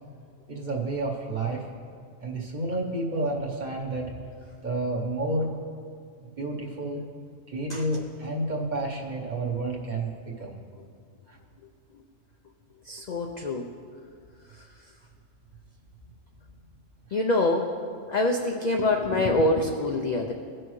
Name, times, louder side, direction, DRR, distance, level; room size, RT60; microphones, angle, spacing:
voice 1, 0.5-1.7 2.2-4.1 4.6-5.5 6.4-7.0 7.5-10.6 11.3-11.4 17.1-17.2, right 2 dB, 40° right, 0 dB, 1.0 m, -30 dB
voice 2, 12.9-13.7 17.1-17.7 18.1-20.3, left 2 dB, 60° left, 2 dB, 0.4 m, -25 dB
16.5 x 6.2 x 3.1 m, 2.2 s
omnidirectional pair, 1.3 m